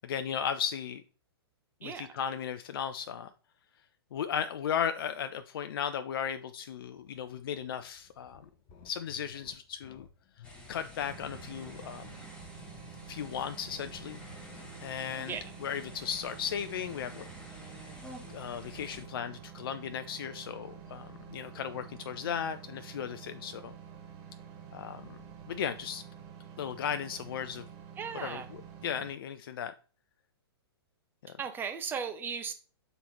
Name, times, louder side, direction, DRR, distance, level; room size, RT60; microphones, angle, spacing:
voice 1, 0.0-1.0 1.8-3.3 4.1-8.4 8.8-10.1 10.7-12.1 13.1-14.2 14.8-15.3 15.6-17.3 18.3-23.7 24.7-25.2 25.5-26.0 26.6-27.6 28.2-28.4 28.8-29.7 31.2-31.3, left 8 dB, 60° left, 11 dB, 0.4 m, -36 dB
voice 2, 1.8-2.2 15.3-15.5 28.0-28.5 31.3-32.5, right 6 dB, 15° right, 7 dB, 0.8 m, -37 dB
sound 1, 7.0-15.0, left 6 dB, 35° left, 0.9 m, -56 dB
sound 2, 10.4-19.0, left 2 dB, 10° left, 1.3 m, -50 dB
sound 3, 11.0-29.1, right 8 dB, 35° right, 2.2 m, -49 dB
6.9 x 3.9 x 4.3 m, 0.39 s
hypercardioid pair, 120°, 14 cm